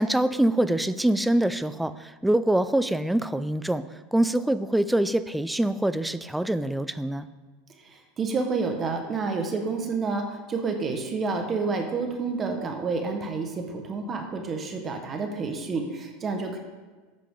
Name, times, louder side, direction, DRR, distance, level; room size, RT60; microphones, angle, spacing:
voice 1, 0.0-7.3, right 1 dB, 5° right, 13 dB, 0.4 m, -24 dB
voice 2, 7.8-16.6, right 4 dB, 30° right, 4 dB, 1.4 m, -29 dB
10.0 x 8.5 x 3.9 m, 1.3 s
hypercardioid pair, 105°, 0 cm